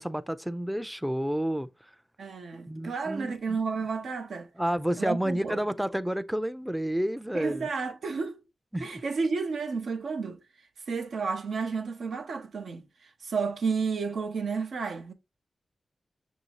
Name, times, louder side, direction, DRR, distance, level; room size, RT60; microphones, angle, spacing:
voice 1, 0.0-1.7 2.7-3.6 4.6-7.7 8.7-8.9, equal, 5° right, 0.4 m, -30 dB
voice 2, 2.2-4.5 5.0-5.6 7.3-8.4 8.8-10.4 10.9-15.1, right 5 dB, 85° right, 0.6 m, -31 dB
6.2 x 2.7 x 2.8 m
cardioid pair, 45°, 0 cm